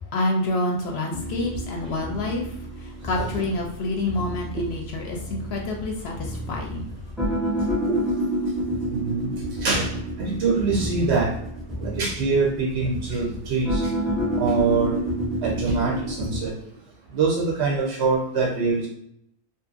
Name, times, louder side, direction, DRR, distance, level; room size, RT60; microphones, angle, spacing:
voice 1, 0.0-7.3, left 2 dB, 65° left, 0 dB, 0.7 m, -28 dB
sound 1, 1.1-16.4, equal, ahead, 0.4 m, -29 dB
voice 2, 8.9-11.3 11.8-14.0 14.4-15.0 15.4-16.5 17.1-18.9, right 4 dB, 60° right, -3 dB, 0.9 m, -24 dB
2.7 x 2.6 x 2.4 m, 0.74 s
omnidirectional pair, 1.4 m